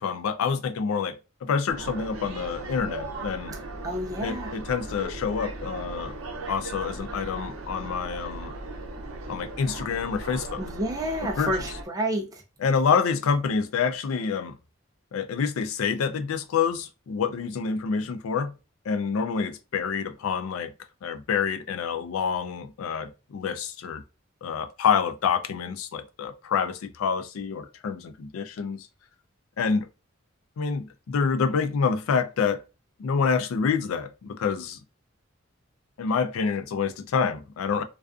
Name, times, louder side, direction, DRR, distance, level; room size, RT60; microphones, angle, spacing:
voice 1, 0.0-3.5 4.2-6.2 6.5-8.5 9.3-10.6 11.2-11.6 12.6-14.6 15.1-18.5 18.9-20.7 21.0-24.0 24.4-28.9 29.6-29.9 30.6-32.6 33.0-34.8 36.0-37.8, left 6 dB, 85° left, 0.4 m, -27 dB
sound 1, 1.7-11.8, right 2 dB, 80° right, 0.6 m, -37 dB
voice 2, 3.8-4.5 10.6-12.3, right 1 dB, 15° right, 0.3 m, -29 dB
2.4 x 2.4 x 2.3 m
head